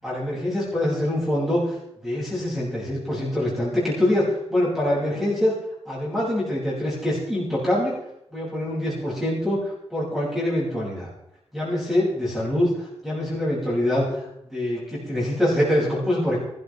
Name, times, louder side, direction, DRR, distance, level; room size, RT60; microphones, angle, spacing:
voice 1, 0.0-1.6 2.0-5.5 5.9-7.9 8.3-9.6 9.9-11.1 11.5-14.1 14.4-16.4, left 1 dB, ahead, -8 dB, 7.5 m, -24 dB
23.0 x 13.5 x 3.7 m, 0.80 s
wide cardioid pair, 130°, 11 cm